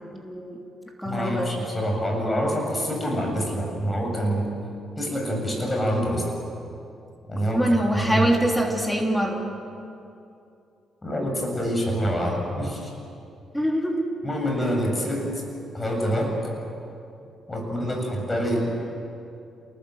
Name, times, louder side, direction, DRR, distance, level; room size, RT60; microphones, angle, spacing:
voice 1, 0.1-0.6 1.0-1.5 7.5-9.5 13.5-14.2, equal, 5° left, 1 dB, 3.1 m, -24 dB
voice 2, 1.0-4.5 5.0-6.3 7.3-7.6 7.9-8.3 11.0-12.9 14.2-15.4 15.7-16.4 17.5-18.7, equal, 20° left, 1 dB, 7.6 m, -26 dB
28.5 x 19.5 x 7.9 m, 2.6 s
cardioid pair, 90°, 0 cm